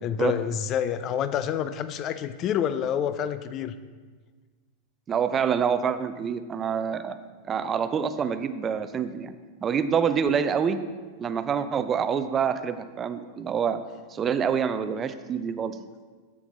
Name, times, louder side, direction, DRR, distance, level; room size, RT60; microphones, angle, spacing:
voice 1, 0.0-3.8 13.2-13.3, left 9 dB, 35° left, 12 dB, 0.5 m, -28 dB
voice 2, 5.1-7.2 7.5-9.3 9.6-10.8 11.2-13.8 14.1-15.8, right 7 dB, 25° right, 11 dB, 0.6 m, -26 dB
14.0 x 6.2 x 3.9 m, 1.4 s
figure-of-eight pair, 90°, 0 cm